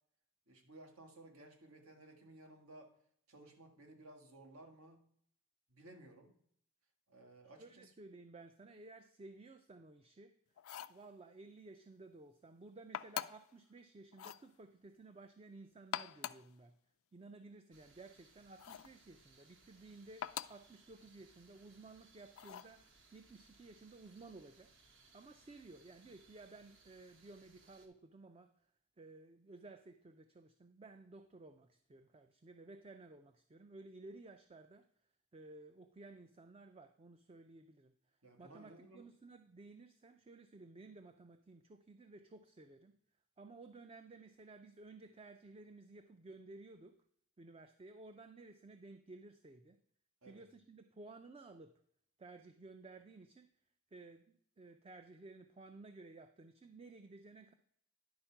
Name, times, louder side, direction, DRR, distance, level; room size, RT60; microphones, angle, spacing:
voice 1, 0.5-2.9 3.3-5.0 5.7-6.4 7.1-7.9 38.2-39.1 50.2-50.4, right 2 dB, 75° right, 3 dB, 1.6 m, -57 dB
voice 2, 7.6-10.3 10.9-16.7 17.1-24.7 25.1-28.5 29.0-34.8 35.3-37.9 38.4-42.9 43.4-46.9 47.4-49.8 50.3-51.8 52.2-53.5 53.9-54.2 54.6-57.5, right 3 dB, 25° right, 8 dB, 0.4 m, -56 dB
sound 1, 10.6-11.0 12.9-13.5 14.1-14.5 15.8-16.5 18.6-19.0 20.2-20.7 22.4-22.8, left 11 dB, 70° left, 0.3 m, -44 dB
sound 2, 17.7-27.9, right 3 dB, 60° right, 1.3 m, -67 dB
10.5 x 4.4 x 5.8 m, 0.66 s
head